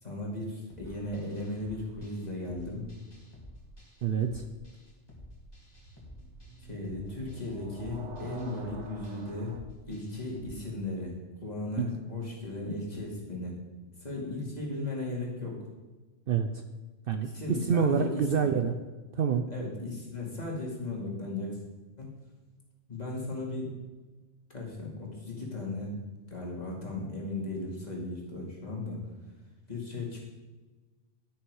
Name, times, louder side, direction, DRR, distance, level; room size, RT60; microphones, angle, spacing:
voice 1, 0.0-2.9 6.6-9.6 9.8-11.1 11.4-13.6 14.0-15.7 17.2-18.5 19.5-21.6 22.0-22.1 22.9-23.7 24.5-25.9 26.3-29.0 29.7-30.2, left 2 dB, 35° left, -3 dB, 2.4 m, -36 dB
sound 1, 0.7-10.6, left 1 dB, 20° left, 2.1 m, -51 dB
sound 2, 0.9-1.7 5.3-9.6, right 4 dB, 75° right, 1.4 m, -48 dB
voice 2, 4.0-4.4 11.8-11.9 16.3-16.6 17.1-18.7 19.1-19.5, right 7 dB, 60° right, 7 dB, 0.7 m, -27 dB
11.5 x 6.4 x 4.7 m, 1.2 s
omnidirectional pair, 1.2 m